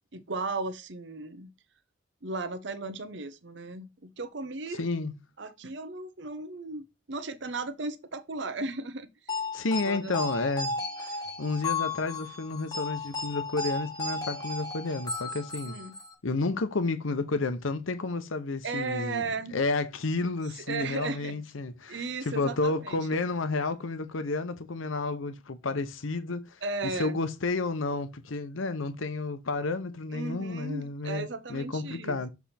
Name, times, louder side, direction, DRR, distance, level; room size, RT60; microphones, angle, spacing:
voice 1, 0.0-1.5 2.2-4.8 5.4-9.3 9.7-10.2 15.6-15.9 18.6-19.6 20.5-21.4 21.9-23.1 26.6-27.2 30.1-32.2, right 3 dB, 65° right, 0.8 m, -36 dB
voice 2, 4.7-5.1 9.5-15.8 16.2-19.2 19.5-26.6 27.0-32.3, left 3 dB, 90° left, 0.8 m, -31 dB
sound 1, 9.3-16.1, left 3 dB, 20° left, 1.1 m, -34 dB
7.2 x 3.5 x 4.2 m
head